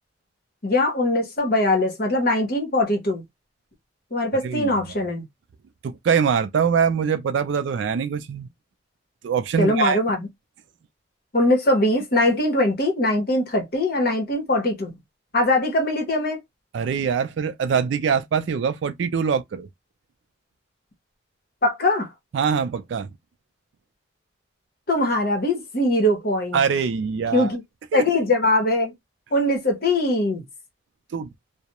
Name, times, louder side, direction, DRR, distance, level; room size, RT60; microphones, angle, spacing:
voice 1, 0.6-3.2 4.1-5.3 9.6-10.3 11.3-14.9 15.3-16.4 21.6-22.1 24.9-26.6 27.3-27.6 27.9-28.9 29.3-30.4, left 1 dB, 50° left, 0.9 m, -21 dB
voice 2, 5.8-8.5 9.2-10.0 16.7-19.7 22.3-23.1 26.5-27.5 27.9-28.0 31.1-31.3, right 6 dB, 70° right, 0.3 m, -23 dB
2.3 x 2.0 x 2.9 m
head